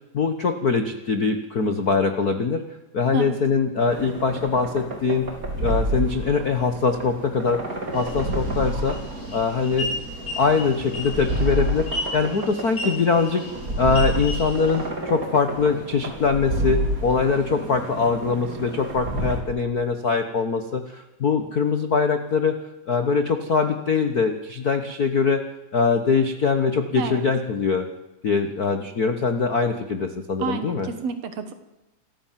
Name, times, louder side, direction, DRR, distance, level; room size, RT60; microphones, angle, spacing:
voice 1, 0.1-2.6 2.9-5.3 5.6-7.6 7.9-9.0 9.3-10.0 10.3-13.5 13.8-22.6 22.9-25.4 25.7-27.9 28.2-30.9, left 5 dB, 55° left, 7 dB, 1.0 m, -22 dB
sound 1, 3.9-19.4, right 1 dB, 25° right, 3.6 m, -30 dB
sound 2, 7.9-14.9, left 2 dB, 20° left, 8.3 m, -35 dB
voice 2, 27.0-27.3 30.4-31.5, right 6 dB, 60° right, 9 dB, 2.4 m, -29 dB
26.0 x 14.5 x 7.6 m, 1.0 s
omnidirectional pair, 3.7 m